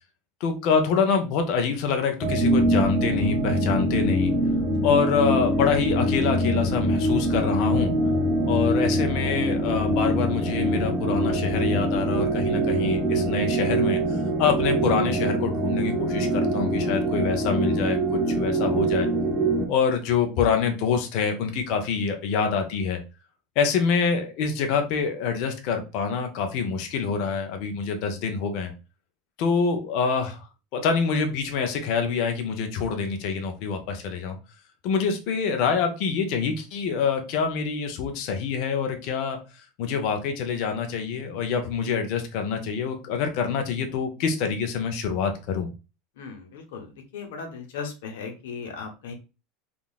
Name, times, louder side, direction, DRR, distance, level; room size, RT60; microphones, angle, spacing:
voice 1, 0.4-4.3 4.8-7.9 8.5-18.0 18.3-19.1 19.7-23.0 23.6-28.7 29.4-30.5 30.7-34.4 34.8-39.4 39.8-45.7, left 6 dB, 45° left, 5 dB, 0.6 m, -26 dB
sound 1, 2.2-19.7, right 1 dB, 5° right, 0.5 m, -24 dB
voice 2, 46.2-49.1, left 5 dB, 90° left, 4 dB, 0.9 m, -37 dB
3.7 x 2.4 x 2.3 m, 0.30 s
supercardioid pair, 180°, 0 cm